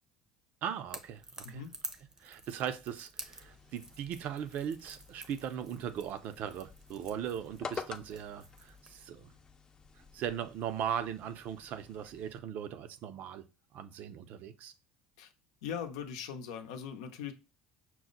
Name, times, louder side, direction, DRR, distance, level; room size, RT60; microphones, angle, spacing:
voice 1, 0.6-1.6 2.2-9.3 10.1-13.4 13.7-14.7, right 9 dB, 60° right, 0.5 m, -39 dB
Crackle / Crack, 0.9-9.0, right 2 dB, 20° right, 0.6 m, -50 dB
sound 1, 3.2-12.4, left 5 dB, 25° left, 0.5 m, -50 dB
voice 2, 15.6-17.3, left 7 dB, 90° left, 0.7 m, -40 dB
6.0 x 2.1 x 3.8 m
supercardioid pair, 100°, 3 cm